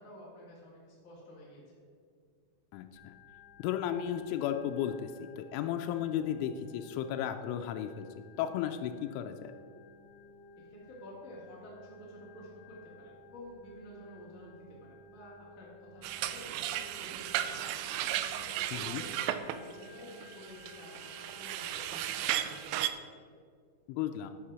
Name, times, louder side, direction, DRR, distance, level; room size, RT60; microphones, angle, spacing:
voice 1, 0.0-1.8 10.5-23.1, equal, 30° left, -6 dB, 1.5 m, -51 dB
voice 2, 2.7-3.1 3.6-8.1 8.4-9.5 18.7-19.0 23.9-24.3, left 10 dB, 90° left, 6 dB, 3.0 m, -34 dB
Organ, 3.0-22.6, left 2 dB, 70° left, 3.0 m, -55 dB
sound 1, 16.0-22.9, right 12 dB, 85° right, 2.4 m, -35 dB
11.5 x 5.7 x 6.1 m, 2.2 s
omnidirectional pair, 5.4 m